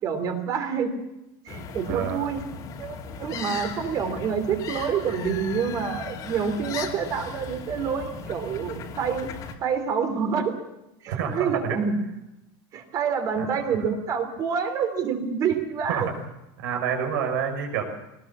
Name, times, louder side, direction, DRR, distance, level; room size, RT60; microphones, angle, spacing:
voice 1, 0.0-0.9 1.4-2.4 2.8-9.3 9.6-10.6 11.0-11.9 12.7-16.1, right 6 dB, 30° right, 8 dB, 3.0 m, -27 dB
sound 1, 1.5-9.6, left 5 dB, 30° left, 2.7 m, -37 dB
voice 2, 1.8-2.2 11.1-11.8 13.4-13.5 15.9-16.0 16.6-17.8, right 7 dB, 75° right, 3 dB, 5.8 m, -28 dB
21.0 x 20.0 x 7.4 m, 0.91 s
supercardioid pair, 170°, 11 cm